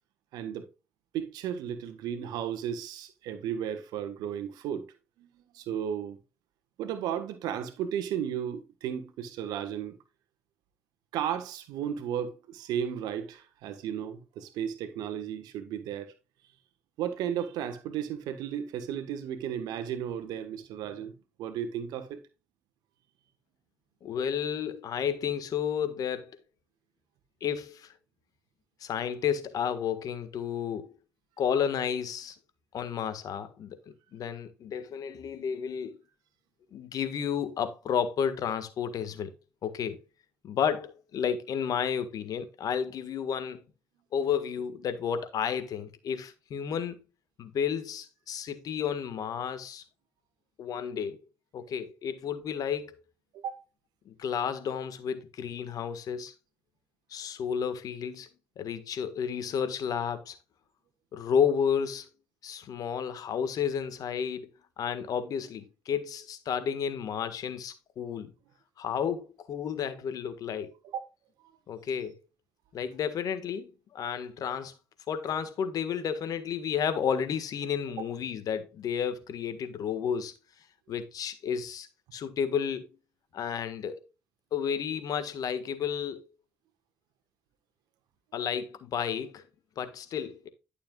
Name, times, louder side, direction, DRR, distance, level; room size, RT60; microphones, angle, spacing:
voice 1, 0.3-0.7 1.1-4.8 5.2-6.2 6.8-10.0 11.1-16.1 17.0-22.2 53.3-53.6 70.9-71.0 71.8-71.9 78.0-78.1, right 9 dB, 75° right, 1.3 m, -34 dB
voice 2, 24.0-26.4 27.4-27.9 28.8-30.9 31.4-32.4 32.7-33.8 34.1-36.0 36.7-39.3 39.6-40.0 40.4-43.6 44.1-47.0 47.4-49.8 50.6-51.2 51.5-53.0 54.0-56.3 57.1-58.3 58.6-60.4 61.1-62.1 62.4-68.3 68.8-70.7 71.7-72.2 72.7-74.7 75.1-80.3 80.9-82.9 83.3-84.0 84.5-86.2 88.3-89.4 89.8-90.5, left 7 dB, 65° left, 1.6 m, -32 dB
11.5 x 6.9 x 2.4 m
hypercardioid pair, 50°, 7 cm